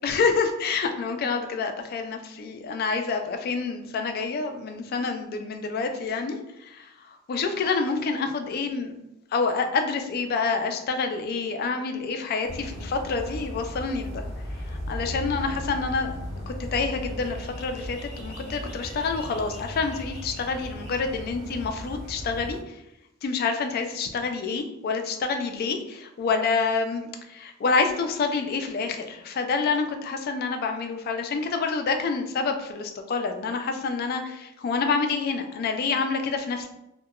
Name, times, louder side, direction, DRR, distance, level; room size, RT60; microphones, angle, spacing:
voice 1, 0.0-8.9 9.3-14.2 14.7-16.1 16.5-22.8 23.2-36.7, left 4 dB, 50° left, 6 dB, 0.3 m, -28 dB
sound 1, 12.4-22.6, left 1 dB, 5° left, 1.3 m, -36 dB
2.8 x 2.1 x 2.3 m, 0.86 s
head